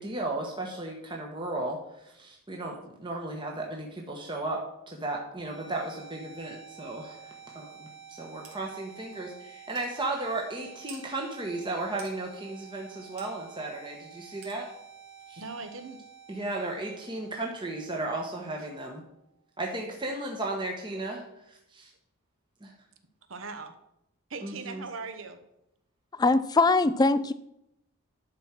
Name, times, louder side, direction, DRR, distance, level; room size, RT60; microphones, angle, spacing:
voice 1, 0.0-4.6 4.9-7.2 7.5-14.7 15.3-15.4 16.3-19.0 19.6-21.9 22.6-22.7 24.4-24.8, right 2 dB, 20° right, 0 dB, 1.1 m, -35 dB
sound 1, 5.2-19.2, right 6 dB, 5° right, 1.6 m, -50 dB
sound 2, 8.4-8.6 9.1-9.2 9.7-9.9 10.9-11.0 12.0-12.2 13.2-13.3 14.4-14.6, right 4 dB, 75° right, 2.7 m, -47 dB
voice 2, 15.4-16.0 23.3-23.7 24.3-25.4, right 4 dB, 60° right, 8 dB, 1.0 m, -39 dB
voice 3, 26.2-27.3, left 3 dB, 15° left, 14 dB, 0.3 m, -22 dB
11.0 x 4.6 x 5.9 m, 0.82 s
head